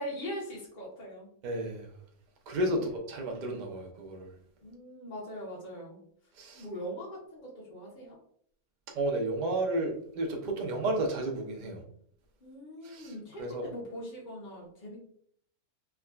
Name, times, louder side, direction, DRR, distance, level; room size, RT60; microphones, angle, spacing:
voice 1, 0.0-1.3 2.6-2.8 3.3-3.8 4.6-6.0 6.5-8.2 12.4-15.0, equal, 40° left, -6 dB, 0.7 m, -41 dB
voice 2, 1.4-1.9 2.5-4.3 6.3-6.7 8.9-11.8 12.8-13.6, right 1 dB, 75° right, 1 dB, 0.4 m, -32 dB
3.5 x 2.1 x 2.3 m, 0.63 s
omnidirectional pair, 1.6 m